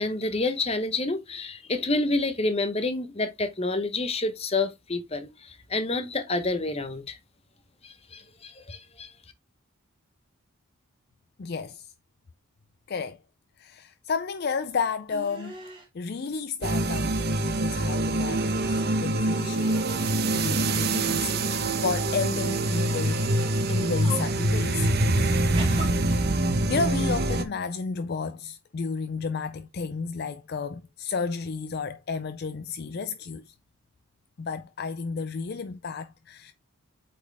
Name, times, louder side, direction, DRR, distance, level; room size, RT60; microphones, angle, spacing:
voice 1, 0.0-7.2 7.8-9.1, left 2 dB, 25° left, 0.8 m, -28 dB
voice 2, 11.4-11.9 12.9-13.2 13.6-15.6 15.9-19.8 20.3-23.3 23.7-24.9 25.7-26.0 26.7-33.5 34.4-36.5, left 5 dB, 45° left, 0.4 m, -32 dB
sound 1, 15.1-15.9 16.8-17.6 17.9-19.0 19.4-20.1 20.8-21.9 22.7-23.0 23.7-24.4 25.5-25.9, right 2 dB, 20° right, 2.3 m, -41 dB
sound 2, 16.6-27.4, right 2 dB, 45° right, 1.0 m, -25 dB
8.2 x 4.3 x 3.3 m
head